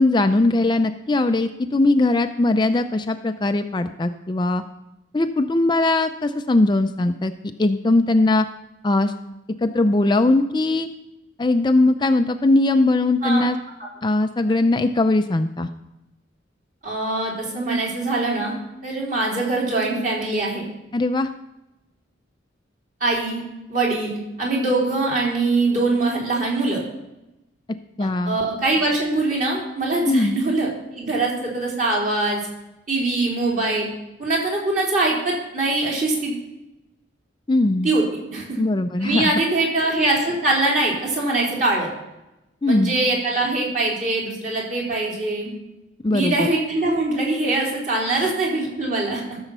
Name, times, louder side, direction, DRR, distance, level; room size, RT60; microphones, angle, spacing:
voice 1, 0.0-4.6 5.1-7.3 7.6-8.5 8.8-9.1 9.6-10.9 11.4-13.6 14.0-15.7 20.9-21.3 28.0-28.4 30.1-30.4 37.5-37.9 38.6-39.3 42.6-42.9 46.0-46.5 48.2-48.3, left 2 dB, 25° left, 8 dB, 0.4 m, -20 dB
voice 2, 16.8-18.5 18.8-20.7 23.0-23.4 23.7-26.8 28.0-32.4 32.9-33.9 34.2-36.3 37.8-38.0 38.3-38.6 39.0-41.9 42.7-45.5 46.1-49.2, right 2 dB, 45° right, -3 dB, 3.6 m, -23 dB
14.0 x 7.1 x 5.4 m, 0.94 s
head